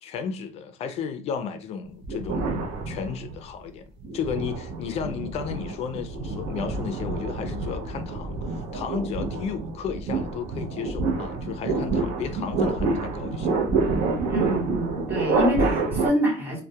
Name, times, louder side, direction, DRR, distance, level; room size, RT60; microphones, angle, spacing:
voice 1, 0.0-3.9 4.1-13.6, left 6 dB, 45° left, 0.4 m, -33 dB
sound 1, 2.0-3.5 4.0-16.1, right 3 dB, 70° right, 0.6 m, -28 dB
voice 2, 14.3-16.6, equal, 15° right, 0.8 m, -26 dB
2.2 x 2.1 x 2.7 m
cardioid pair, 140°, 15 cm